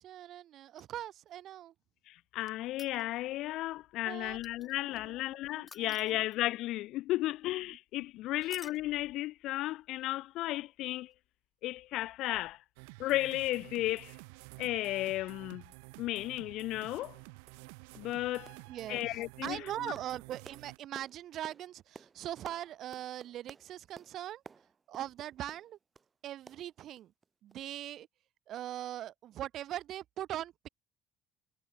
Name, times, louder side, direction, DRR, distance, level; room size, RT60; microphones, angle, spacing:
voice 1, 0.0-1.7 4.0-5.2 5.6-6.2 18.7-24.4 24.9-25.8 26.2-27.1 27.4-28.1 28.5-30.7, right 12 dB, 60° right, 1.7 m, -41 dB
sound 1, 0.7-1.4 2.6-3.4 4.4-5.0 5.7-6.6 8.4-8.9 11.1-11.2, left 4 dB, 25° left, 7.5 m, -52 dB
voice 2, 2.1-11.1 11.6-12.6 13.0-14.2 14.6-15.6 16.0-17.2 18.0-18.5 18.9-19.9, left 16 dB, 70° left, 0.5 m, -34 dB
sound 2, 12.8-20.8, right 35 dB, 85° right, 5.0 m, -51 dB
sound 3, 17.5-17.6 17.9-18.2 18.5-18.7 19.0-26.1 26.5-27.2 27.5-27.6 28.0-28.1, right 5 dB, 30° right, 3.0 m, -54 dB
supercardioid pair, 80°, 0 cm